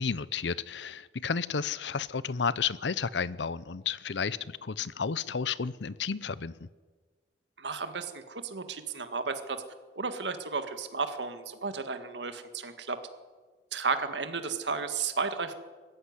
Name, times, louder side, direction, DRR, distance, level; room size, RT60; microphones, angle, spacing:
voice 1, 0.0-6.5, left 6 dB, 85° left, 19 dB, 0.7 m, -32 dB
voice 2, 7.6-9.6 9.9-13.0 13.7-15.5, right 4 dB, 85° right, 9 dB, 1.9 m, -33 dB
20.5 x 15.0 x 9.7 m, 1.4 s
head